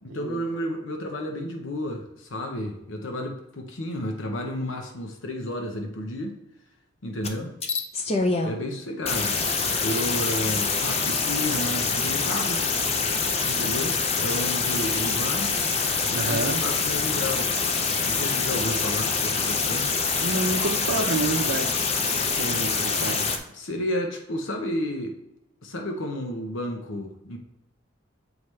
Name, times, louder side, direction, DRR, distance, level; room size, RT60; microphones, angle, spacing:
voice 1, 0.0-6.4 7.0-7.5 8.4-9.4 9.8-12.6 13.4-15.5 16.1-17.7 18.0-19.9 23.5-25.2 25.6-27.4, left 1 dB, 80° left, 3 dB, 0.9 m, -32 dB
sound 1, 7.2-7.3 7.6-8.5 9.1-23.4, left 4 dB, 30° left, 0.5 m, -25 dB
voice 2, 16.2-16.6 20.2-21.8 22.1-23.2, right 3 dB, 80° right, 1 dB, 0.6 m, -29 dB
7.1 x 4.8 x 3.2 m, 0.88 s
head